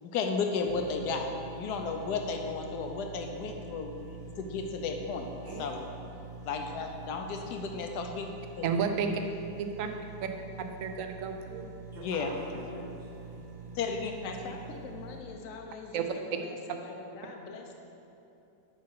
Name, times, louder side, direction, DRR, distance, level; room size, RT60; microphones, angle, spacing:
voice 1, 0.0-1.3 1.5-3.9 4.4-5.3 5.6-5.8 6.4-8.3 8.6-8.7 12.0-12.3 13.7-14.5, left 4 dB, 75° left, 4 dB, 1.3 m, -33 dB
sound 1, 0.6-15.2, right 3 dB, 85° right, 1.2 m, -46 dB
voice 2, 5.4-5.8 11.9-13.7, right 3 dB, 40° right, -8 dB, 1.2 m, -48 dB
voice 3, 8.6-9.1 9.6-9.9 10.8-11.7 15.9-16.0, right 6 dB, 65° right, 5 dB, 0.9 m, -31 dB
voice 4, 12.7-13.0 14.2-17.7, left 4 dB, 60° left, 2 dB, 0.9 m, -44 dB
8.2 x 5.8 x 4.6 m, 2.8 s
omnidirectional pair, 1.8 m